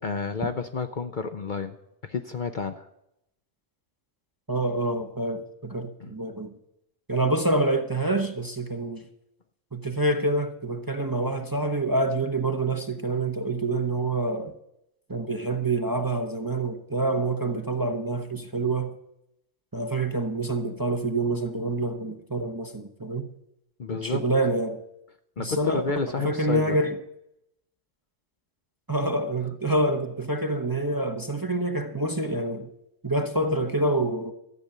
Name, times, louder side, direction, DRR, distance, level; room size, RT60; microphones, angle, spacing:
voice 1, 0.0-1.8 2.1-2.9 6.0-6.1 23.8-24.2 25.4-26.8, left 4 dB, 50° left, 0.7 m, -30 dB
voice 2, 4.5-6.5 7.1-9.0 9.7-14.5 15.1-18.9 19.7-23.3 23.9-24.8 25.4-25.8 26.2-27.0 28.9-32.7 33.0-34.3, right 2 dB, 20° right, 0.8 m, -27 dB
13.5 x 8.6 x 6.8 m
omnidirectional pair, 1.3 m